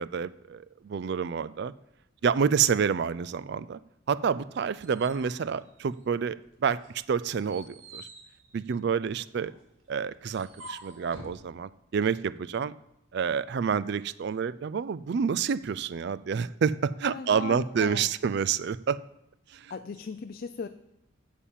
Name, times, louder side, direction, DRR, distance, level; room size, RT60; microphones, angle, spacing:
voice 1, 0.0-1.7 2.2-3.8 4.1-6.4 6.6-6.8 7.1-8.1 8.5-9.5 9.9-12.7 13.1-19.0 19.5-19.7, right 6 dB, 55° right, 16 dB, 0.3 m, -28 dB
sound 1, 4.4-6.4 6.8-11.4, right 1 dB, 70° right, 1.8 m, -49 dB
voice 2, 17.0-18.1 19.7-20.7, left 5 dB, 45° left, 8 dB, 0.4 m, -38 dB
8.5 x 7.3 x 7.3 m, 0.84 s
head